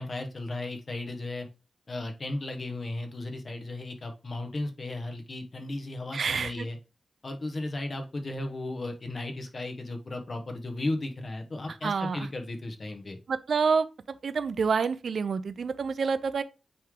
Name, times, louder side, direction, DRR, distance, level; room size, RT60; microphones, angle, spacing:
voice 1, 0.0-1.5 1.9-6.8 7.2-13.2, left 2 dB, 40° left, 1.3 m, -35 dB
voice 2, 6.1-6.7 11.8-12.2 13.3-13.9 14.2-16.4, right 5 dB, 65° right, 0.6 m, -27 dB
8.5 x 3.3 x 3.8 m
wide cardioid pair, 95°, 0 cm